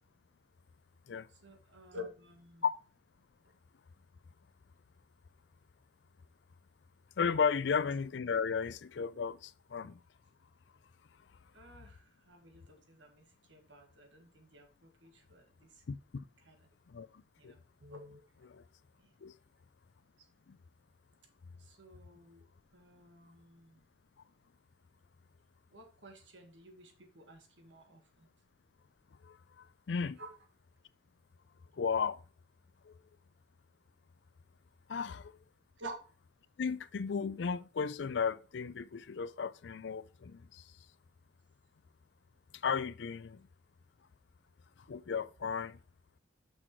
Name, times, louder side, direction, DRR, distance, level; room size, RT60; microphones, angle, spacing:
voice 1, 1.3-2.6 11.5-15.8 16.4-16.5 17.4-18.2 19.0-19.1 20.2-20.3 21.6-22.4 22.7-23.8 25.7-28.3 30.2-30.3 35.8-35.9, equal, 80° right, 1.7 m, -51 dB
voice 2, 7.2-10.0 15.9-16.2 16.9-17.5 18.4-18.6 19.2-19.3 20.5-20.6 29.2-30.2 31.8-32.2 32.9-33.0 34.9-35.3 36.6-40.6 42.6-43.5 44.9-45.8, left 6 dB, 75° left, 0.4 m, -35 dB
6.4 x 6.1 x 4.5 m
head